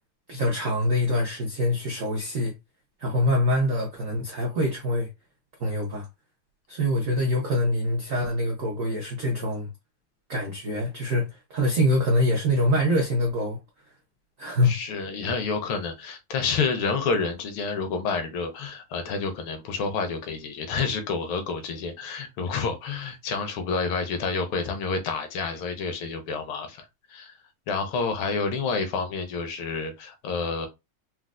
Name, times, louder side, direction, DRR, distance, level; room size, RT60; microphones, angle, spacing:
voice 1, 0.3-2.5 3.0-5.1 5.6-6.1 6.7-9.7 10.3-13.6 14.4-14.8, left 1 dB, 75° right, 0.7 m, -24 dB
voice 2, 14.6-27.4 27.7-30.7, left 4 dB, 80° left, 1.5 m, -29 dB
4.3 x 2.0 x 2.4 m
omnidirectional pair, 2.3 m